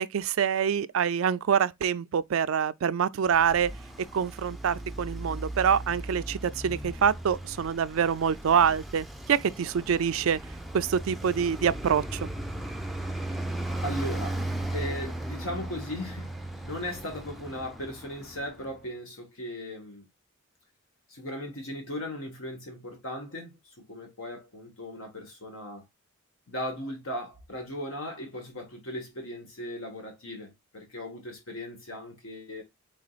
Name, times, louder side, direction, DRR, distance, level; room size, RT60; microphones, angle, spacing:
voice 1, 0.0-3.7 4.1-10.4 10.7-12.3, right 7 dB, 75° right, 0.4 m, -26 dB
Traffic noise roadway noise, 3.3-18.7, right 1 dB, ahead, 0.4 m, -37 dB
voice 2, 13.8-14.4 14.7-20.1 21.1-23.6 23.9-25.8 26.5-32.6, left 1 dB, 80° left, 1.6 m, -37 dB
5.0 x 3.7 x 2.4 m
head